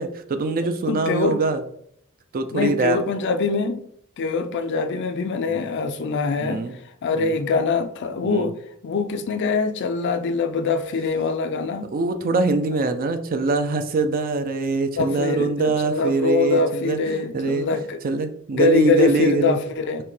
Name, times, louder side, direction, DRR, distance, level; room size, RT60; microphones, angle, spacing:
voice 1, 0.0-1.6 2.3-3.0 5.5-5.7 6.4-6.7 7.2-7.3 8.2-8.5 11.9-17.8 18.0-19.6, right 3 dB, 40° right, 0.4 m, -23 dB
voice 2, 0.9-1.4 2.5-3.8 4.2-6.7 7.0-8.5 8.8-11.9 15.0-18.0 18.5-20.0, left 4 dB, 55° left, 0.4 m, -23 dB
5.8 x 2.2 x 3.2 m
head